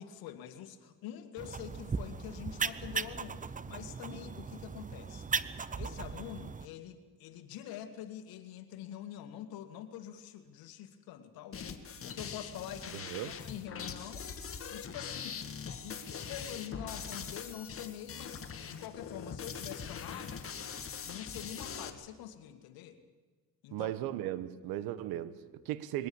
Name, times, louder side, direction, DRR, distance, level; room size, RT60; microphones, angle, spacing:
voice 1, 0.0-14.3 14.7-15.4 15.8-20.5 21.1-23.0 23.6-24.0, left 10 dB, 80° left, 8 dB, 2.2 m, -46 dB
sound 1, 1.4-6.7, right 5 dB, 20° right, 0.8 m, -38 dB
sound 2, 11.5-21.9, left 6 dB, 40° left, 1.9 m, -42 dB
voice 2, 12.9-13.3 23.7-26.1, right 13 dB, 80° right, 15 dB, 1.3 m, -37 dB
22.0 x 18.5 x 7.1 m, 1.4 s
cardioid pair, 95°, 36 cm